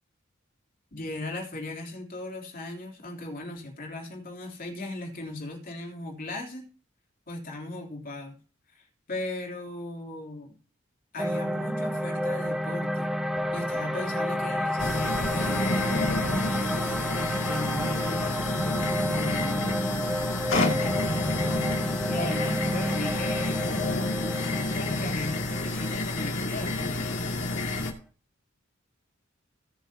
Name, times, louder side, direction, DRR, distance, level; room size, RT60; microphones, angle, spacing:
voice 1, 0.9-6.7 7.3-8.4 8.7-10.6 11.1-13.1 13.5-18.5 19.1-20.2 20.5-23.8 24.2-26.8, left 2 dB, 45° left, 1 dB, 3.2 m, -38 dB
sound 1, 11.2-27.4, equal, ahead, 0.8 m, -31 dB
sound 2, 14.8-27.9, left 2 dB, 70° left, 2.5 m, -29 dB
19.0 x 7.0 x 2.8 m, 0.38 s
head